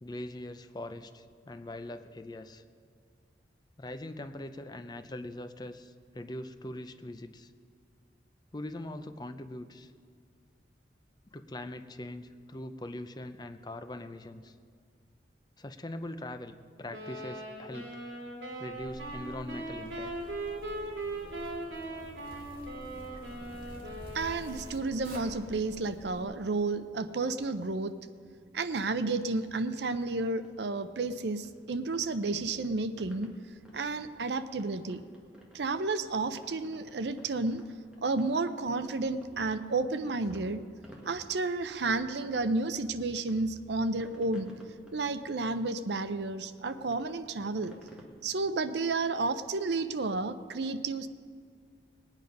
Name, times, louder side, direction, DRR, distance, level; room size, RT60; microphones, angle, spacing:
voice 1, 0.0-2.6 3.8-7.5 8.5-9.9 11.3-14.5 15.6-18.0 18.6-20.1, left 1 dB, 25° left, 9 dB, 0.5 m, -42 dB
sound 1, 16.9-24.9, right 2 dB, 85° right, 2.3 m, -40 dB
Zipper (clothing), 18.7-26.2, equal, 55° right, 2.4 m, -48 dB
voice 2, 24.1-27.9 28.5-33.3 33.7-35.0 35.5-37.6 38.0-40.6 41.0-44.5 44.9-47.8 48.2-51.1, right 3 dB, 70° right, 12 dB, 0.6 m, -31 dB
sound 2, 30.1-48.1, equal, 5° right, 1.6 m, -57 dB
19.5 x 9.1 x 5.3 m, 2.1 s
head